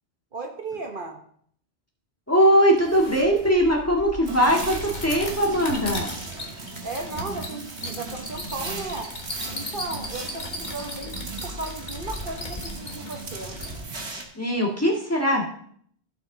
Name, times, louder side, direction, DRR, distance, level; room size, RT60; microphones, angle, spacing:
voice 1, 0.3-1.2 6.8-9.1 9.5-11.2 11.4-13.6, right 3 dB, 50° right, 3 dB, 1.2 m, -35 dB
voice 2, 2.3-6.1 14.4-15.5, equal, 15° left, -1 dB, 1.8 m, -21 dB
sound 1, 2.8-13.8, left 1 dB, 45° left, 1.7 m, -37 dB
sound 2, 4.2-14.2, right 3 dB, 75° right, 1.9 m, -38 dB
16.0 x 5.7 x 3.8 m, 0.62 s
omnidirectional pair, 1.1 m